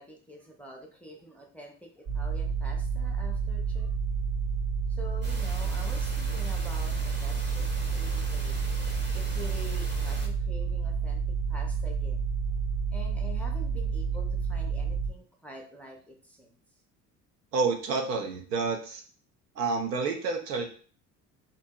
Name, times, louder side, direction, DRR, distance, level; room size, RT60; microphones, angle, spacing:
voice 1, 0.0-3.9 4.9-8.6 9.1-11.2 11.5-12.2 12.9-16.6, equal, 5° left, -1 dB, 0.4 m, -46 dB
sound 1, 2.1-15.1, right 5 dB, 55° right, 0.9 m, -30 dB
sound 2, 5.2-10.3, equal, 25° right, 0.8 m, -41 dB
voice 2, 17.5-19.0 19.6-20.7, right 4 dB, 80° right, 4 dB, 0.6 m, -29 dB
2.7 x 2.6 x 2.2 m, 0.42 s
figure-of-eight pair, 60°, 48 cm